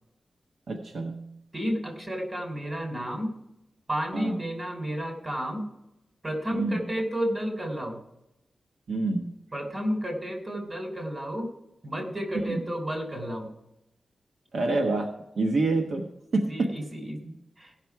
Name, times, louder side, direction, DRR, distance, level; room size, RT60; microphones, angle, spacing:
voice 1, 0.7-1.4 4.1-4.4 6.5-6.8 8.9-9.4 12.5-12.6 14.5-16.7, right 2 dB, 75° right, 2 dB, 1.2 m, -27 dB
voice 2, 1.5-3.3 3.9-5.6 6.2-8.0 9.5-11.5 11.8-13.5 16.3-17.7, equal, 30° right, 2 dB, 3.3 m, -32 dB
17.0 x 6.0 x 4.7 m, 0.86 s
wide cardioid pair, 100°, 0 cm